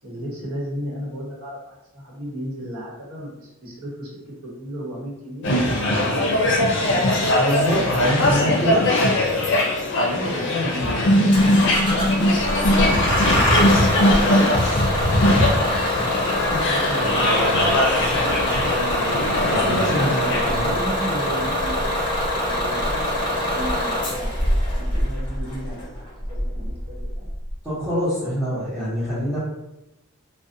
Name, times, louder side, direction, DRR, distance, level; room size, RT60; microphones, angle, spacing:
voice 1, 0.0-7.7 10.0-12.3 12.7-15.2 16.0-18.3 19.9-27.3, equal, 75° right, -5 dB, 1.0 m, -35 dB
sound 1, 5.4-20.5, left 1 dB, 55° left, 0.5 m, -20 dB
voice 2, 7.4-8.9 19.4-20.9 27.6-29.4, equal, 5° right, -15 dB, 0.9 m, -25 dB
Bus / Engine starting, 11.3-27.5, left 1 dB, 20° left, 0.7 m, -24 dB
2.5 x 2.1 x 2.6 m, 0.92 s
head